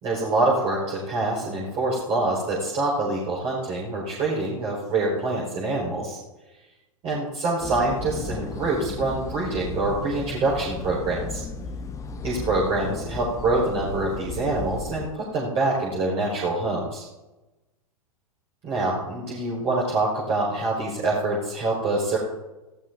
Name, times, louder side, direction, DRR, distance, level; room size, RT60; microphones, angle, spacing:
voice 1, 0.0-6.2 7.0-11.4 12.2-17.0 18.6-22.2, right 2 dB, 35° right, -4 dB, 5.1 m, -25 dB
sound 1, 7.6-15.1, left 4 dB, 15° left, 1.1 m, -35 dB
19.0 x 15.5 x 2.7 m, 1.0 s
figure-of-eight pair, 100°, 19 cm